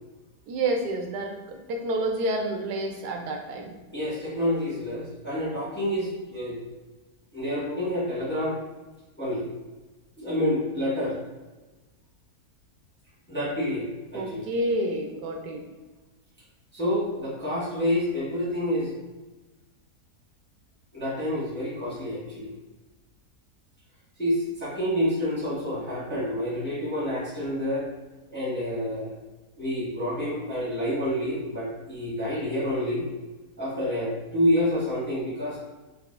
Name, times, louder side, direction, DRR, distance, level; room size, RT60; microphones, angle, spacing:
voice 1, 0.5-3.8 14.1-15.6, right 1 dB, 80° right, 3 dB, 1.1 m, -29 dB
voice 2, 3.9-6.6 7.3-8.6 9.2-9.5 10.2-11.2 13.3-14.4 16.7-18.9 20.9-22.5 24.2-27.9 28.3-29.2 29.6-33.1 33.6-35.6, left 1 dB, 10° left, -10 dB, 1.0 m, -28 dB
3.6 x 3.2 x 2.4 m, 1.2 s
omnidirectional pair, 1.7 m